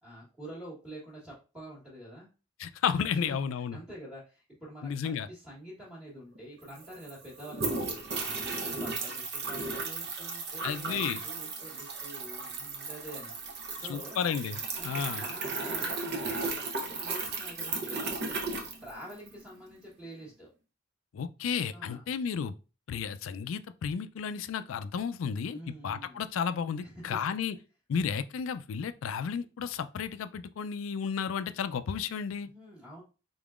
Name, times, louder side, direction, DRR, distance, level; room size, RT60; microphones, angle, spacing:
voice 1, 0.0-2.3 3.1-8.5 8.8-14.2 14.7-18.4 18.8-20.5 21.7-22.0 25.5-26.2 26.8-27.1 32.5-33.0, right 1 dB, ahead, 1.2 m, -47 dB
voice 2, 2.6-3.8 4.8-5.3 10.6-11.2 13.9-15.2 21.1-22.6 22.9-27.6 27.9-32.5, left 7 dB, 85° left, 0.3 m, -33 dB
sound 1, 6.4-6.5 6.6-19.4, right 3 dB, 55° right, 0.8 m, -35 dB
3.8 x 3.6 x 2.4 m
head